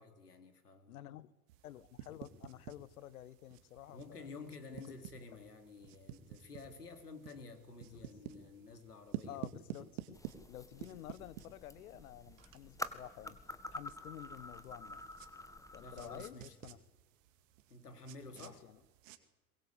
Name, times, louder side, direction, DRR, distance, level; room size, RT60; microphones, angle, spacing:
voice 1, 0.0-1.0 3.9-9.4 15.8-16.5 17.7-18.6, left 3 dB, 85° left, 3.2 m, -51 dB
voice 2, 0.9-1.3 1.6-4.3 4.7-5.0 7.9-8.1 9.3-10.2 10.5-13.4 13.7-15.0 15.7-16.8 18.4-18.8, left 13 dB, 65° left, 1.2 m, -51 dB
sound 1, 1.5-19.2, right 12 dB, 55° right, 2.3 m, -52 dB
sound 2, 10.1-16.3, left 2 dB, 5° left, 1.7 m, -48 dB
22.5 x 21.5 x 8.3 m
figure-of-eight pair, 85°, 46 cm